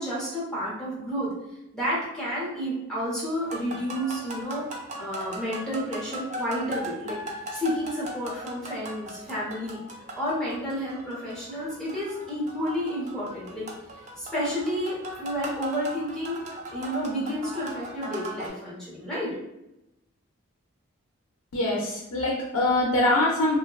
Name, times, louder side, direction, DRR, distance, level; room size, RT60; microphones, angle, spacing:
voice 1, 0.0-1.3 1.7-4.7 5.0-7.2 7.5-9.8 10.1-13.7 14.2-16.4 16.7-19.3, equal, 5° left, -8 dB, 0.9 m, -30 dB
sound 1, 3.4-18.5, right 1 dB, 30° right, 0.3 m, -39 dB
voice 2, 21.5-23.6, left 2 dB, 85° left, -4 dB, 0.5 m, -23 dB
2.7 x 2.2 x 2.2 m, 0.87 s
head